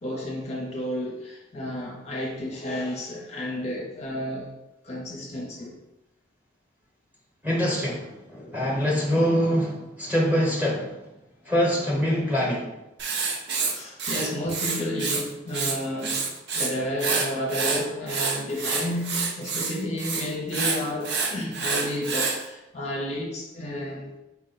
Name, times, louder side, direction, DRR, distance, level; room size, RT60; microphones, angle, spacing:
voice 1, 0.0-4.5 4.8-5.7 8.4-8.6 13.7-24.1, left 1 dB, 35° left, -2 dB, 0.6 m, -31 dB
voice 2, 7.4-11.0 11.4-12.7, equal, 10° right, -3 dB, 0.9 m, -24 dB
Writing, 13.0-15.2 15.5-16.7 17.0-22.4, right 5 dB, 55° right, 0.5 m, -27 dB
4.2 x 2.1 x 3.9 m, 0.94 s
head